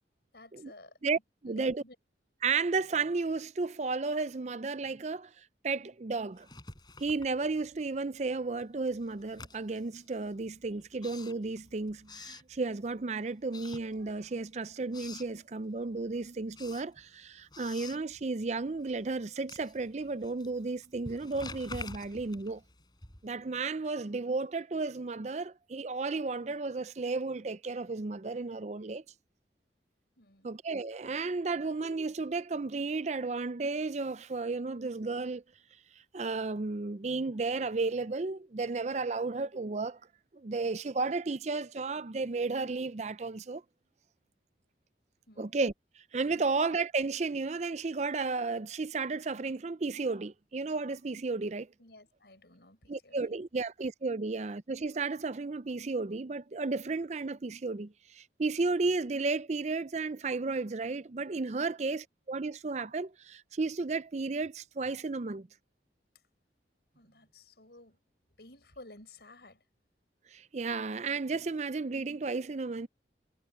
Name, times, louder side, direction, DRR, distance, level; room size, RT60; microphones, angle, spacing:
voice 1, 0.3-1.0 1.5-2.0 30.2-30.5 45.3-45.6 46.3-46.5 51.8-53.4 61.6-61.7 67.0-68.0 68.4-69.6, left 2 dB, 65° left, 7.1 m, -54 dB
voice 2, 1.0-1.8 2.4-5.3 5.6-6.5 7.0-22.6 23.2-29.0 30.4-35.4 36.1-40.0 40.3-43.6 45.4-45.7 46.1-51.7 52.9-65.5 70.3-72.9, right 3 dB, 40° right, 0.5 m, -33 dB
Writing, 6.4-7.9 8.2-13.0 13.4-14.4 14.7-15.4 15.8-23.5, left 3 dB, 25° left, 4.7 m, -49 dB
head